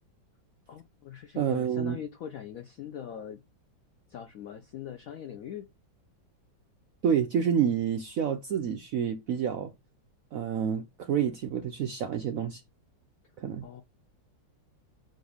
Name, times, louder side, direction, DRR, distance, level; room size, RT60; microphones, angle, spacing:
voice 1, 0.7-3.4 4.1-5.7 13.6-13.8, left 9 dB, 75° left, 0.7 m, -41 dB
voice 2, 1.4-2.0 7.0-9.7 10.3-12.6 13.4-13.7, right 8 dB, 70° right, 0.8 m, -28 dB
7.8 x 2.7 x 4.9 m
omnidirectional pair, 2.1 m